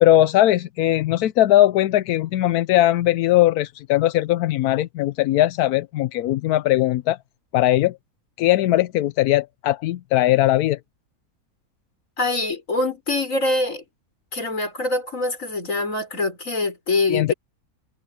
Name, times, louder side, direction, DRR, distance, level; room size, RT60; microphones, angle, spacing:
voice 1, 0.0-7.2 7.5-8.0 8.4-10.8 17.1-17.3, left 14 dB, 90° left, 1.1 m, -19 dB
voice 2, 12.2-13.8 14.3-17.3, left 2 dB, 60° left, 5.4 m, -24 dB
omnidirectional pair, 1.5 m